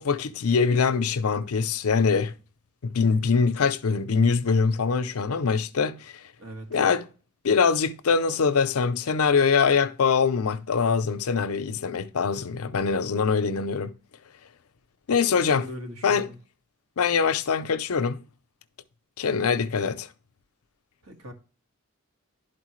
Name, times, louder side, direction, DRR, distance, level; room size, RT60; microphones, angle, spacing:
voice 1, 0.0-2.3 2.8-6.1 6.7-7.1 7.4-13.9 15.1-15.7 16.0-16.3 17.0-18.2 19.2-20.1, left 5 dB, 80° left, 0.6 m, -23 dB
voice 2, 6.4-6.8 15.5-16.4 21.0-21.3, equal, 70° right, 1.7 m, -40 dB
11.0 x 4.4 x 3.1 m
head